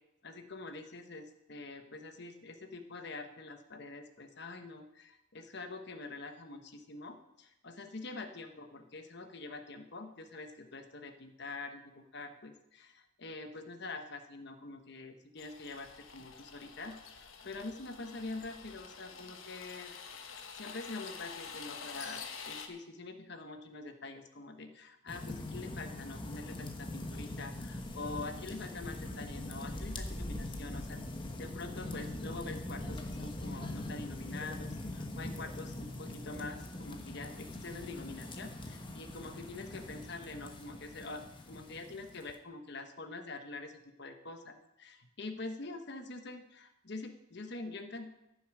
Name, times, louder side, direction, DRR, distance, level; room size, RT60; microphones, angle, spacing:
voice 1, 0.2-19.9 20.5-31.0 31.4-48.1, left 3 dB, 55° left, 7 dB, 1.1 m, -45 dB
sound 1, 15.4-22.7, left 6 dB, 90° left, 1.3 m, -47 dB
sound 2, 25.1-42.4, left 1 dB, 25° left, 1.2 m, -42 dB
14.5 x 7.0 x 6.1 m, 0.88 s
head